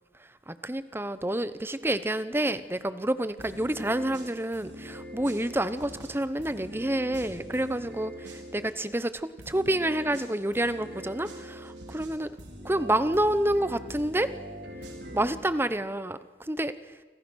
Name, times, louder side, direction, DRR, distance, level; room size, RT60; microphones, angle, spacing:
voice 1, 0.5-12.4 12.6-14.3 15.1-16.7, right 1 dB, 15° right, 13 dB, 0.9 m, -28 dB
sound 1, 3.4-8.7 9.4-15.4, equal, 75° right, 4.8 m, -43 dB
29.0 x 25.5 x 6.4 m, 1.4 s
head